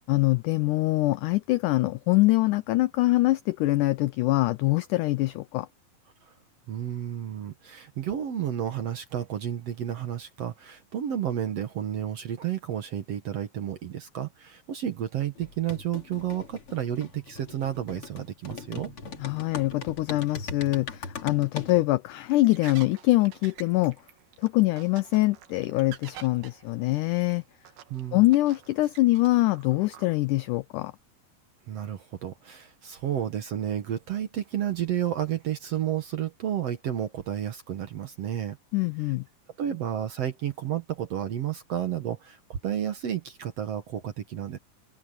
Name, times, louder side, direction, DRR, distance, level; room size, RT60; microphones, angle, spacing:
voice 1, 0.1-5.7 19.2-24.0 24.4-27.4 28.1-30.9 38.7-39.2, left 19 dB, 85° left, 1.8 m, -24 dB
voice 2, 6.7-18.9 27.9-28.3 31.7-38.6 39.6-44.6, right 10 dB, 60° right, 1.9 m, -31 dB
sound 1, 15.4-21.8, left 5 dB, 40° left, 3.3 m, -40 dB
sound 2, 22.3-30.2, right 11 dB, 85° right, 3.6 m, -49 dB
omnidirectional pair, 4.2 m